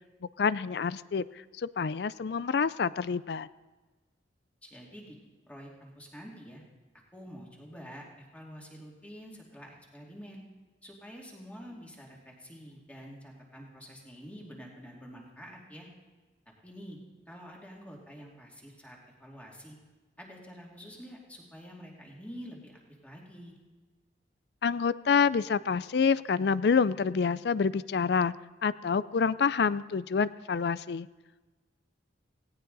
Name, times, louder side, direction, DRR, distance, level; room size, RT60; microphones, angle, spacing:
voice 1, 0.4-1.2 1.6-3.5 24.6-28.3 28.6-31.1, left 5 dB, 60° left, 18 dB, 0.4 m, -27 dB
voice 2, 4.6-5.2 5.5-6.6 7.1-10.4 10.8-15.9 16.6-17.0 17.3-19.8 20.2-23.6, equal, 10° left, -2 dB, 2.5 m, -47 dB
18.0 x 17.5 x 4.0 m, 1.3 s
head